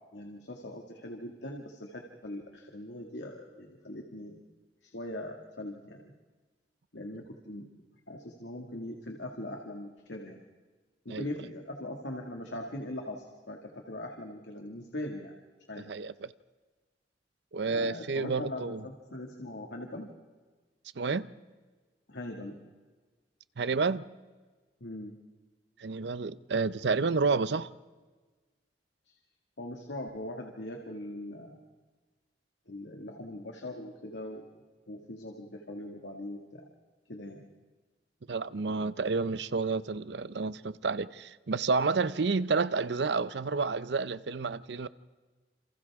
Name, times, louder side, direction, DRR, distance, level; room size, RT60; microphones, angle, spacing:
voice 1, 0.1-4.4 4.8-6.1 6.9-7.7 8.1-10.4 11.1-15.3 15.7-15.8 17.6-20.1 22.1-22.6 24.8-25.2 29.1-29.2 29.6-31.6 32.7-34.4 34.9-36.7 37.1-37.4, left 1 dB, 85° left, 2.1 m, -41 dB
voice 2, 15.9-16.3 17.5-18.8 21.0-21.3 23.6-24.0 25.8-27.7 38.3-44.9, right 4 dB, 70° right, 0.6 m, -30 dB
28.0 x 28.0 x 3.6 m
head